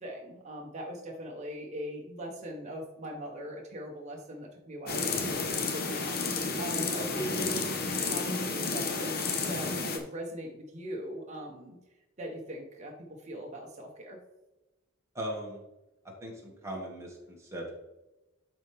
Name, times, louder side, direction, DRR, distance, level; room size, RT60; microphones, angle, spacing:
voice 1, 0.0-7.7 8.0-11.8 12.2-12.9 13.2-14.2, equal, 35° right, -1 dB, 1.1 m, -40 dB
sound 1, 4.9-10.0, left 4 dB, 50° left, 1.0 m, -31 dB
voice 2, 7.3-7.6 15.1-15.6 16.2-17.7, right 1 dB, 15° right, -2 dB, 2.0 m, -39 dB
12.0 x 4.3 x 3.5 m, 1.0 s
head